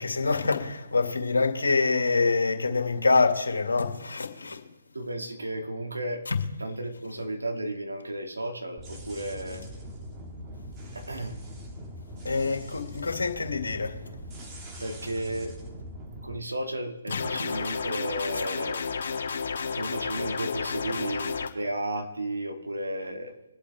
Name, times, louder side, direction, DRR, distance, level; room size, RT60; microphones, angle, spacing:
voice 1, 0.0-4.6 6.3-6.4 12.2-14.0 17.5-17.6, left 4 dB, 75° left, 2.3 m, -25 dB
voice 2, 4.9-6.2 6.6-9.7 10.9-11.4 14.8-15.5 16.2-18.8 19.7-23.6, right 1 dB, 85° right, 2.4 m, -33 dB
sound 1, 8.8-16.4, equal, 20° right, 2.2 m, -42 dB
sound 2, 17.1-21.5, left 5 dB, 60° left, 1.7 m, -31 dB
23.5 x 8.4 x 3.6 m
figure-of-eight pair, 140°, 0 cm